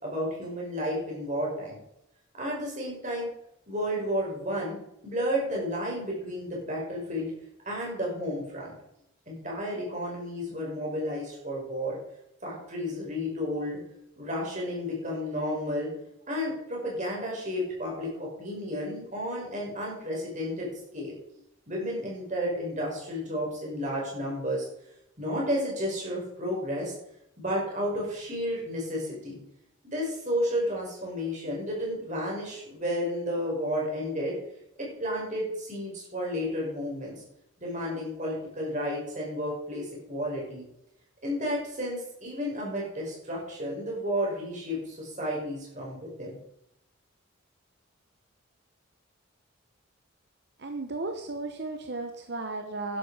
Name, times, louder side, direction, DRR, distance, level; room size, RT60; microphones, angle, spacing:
voice 1, 0.0-1.8 2.4-3.3 3.7-4.8 5.0-7.3 7.6-8.7 9.3-12.0 12.4-13.8 14.2-15.9 16.3-20.7 20.9-21.1 21.7-24.7 25.2-26.9 27.4-29.4 29.8-34.4 34.8-37.1 37.6-40.6 41.2-46.4, equal, 35° right, -3 dB, 5.8 m, -32 dB
voice 2, 50.6-53.0, right 3 dB, 50° right, 5 dB, 1.0 m, -34 dB
12.0 x 11.0 x 5.1 m, 0.80 s
head